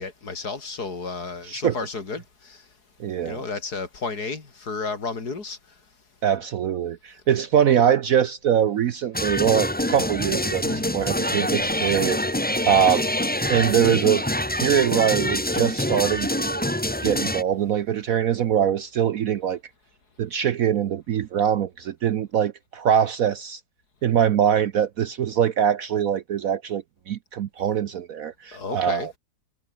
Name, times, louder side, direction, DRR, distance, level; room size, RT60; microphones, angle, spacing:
voice 1, 0.0-2.6 3.2-5.6 28.5-29.1, left 4 dB, 60° left, 3.6 m, -32 dB
voice 2, 3.0-3.4 6.2-12.2 12.7-13.0 13.5-14.2 14.5-16.6 17.0-19.6 20.2-23.6 24.0-29.1, right 9 dB, 60° right, 1.0 m, -23 dB
sound 1, 9.1-17.4, left 1 dB, 5° left, 1.7 m, -25 dB
sound 2, 10.4-13.1 14.6-16.3, left 2 dB, 80° left, 6.8 m, -50 dB
omnidirectional pair, 2.0 m